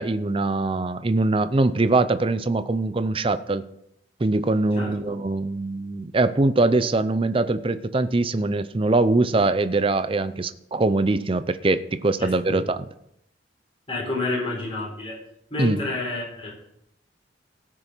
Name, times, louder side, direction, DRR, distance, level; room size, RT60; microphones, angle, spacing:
voice 1, 0.0-3.6 4.2-12.8 15.6-15.8, right 2 dB, 30° right, 12 dB, 0.5 m, -22 dB
voice 2, 12.2-12.6 13.9-15.2 15.5-16.5, left 2 dB, 30° left, -3 dB, 4.1 m, -29 dB
17.5 x 6.2 x 4.5 m, 0.76 s
head